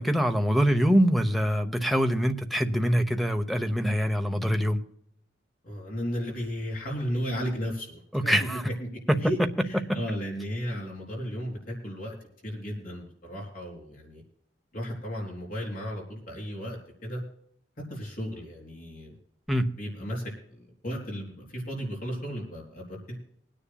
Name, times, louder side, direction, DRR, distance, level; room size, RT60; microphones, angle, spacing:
voice 1, 0.0-4.8 8.1-8.6 9.1-9.2 19.5-19.7, equal, ahead, 7 dB, 0.9 m, -24 dB
voice 2, 5.6-8.9 9.2-9.4 9.6-12.2 12.4-14.2 14.7-17.2 17.9-19.2 19.8-20.2 20.5-23.1, equal, 50° left, -2 dB, 4.1 m, -34 dB
24.0 x 10.0 x 2.3 m, 0.69 s
head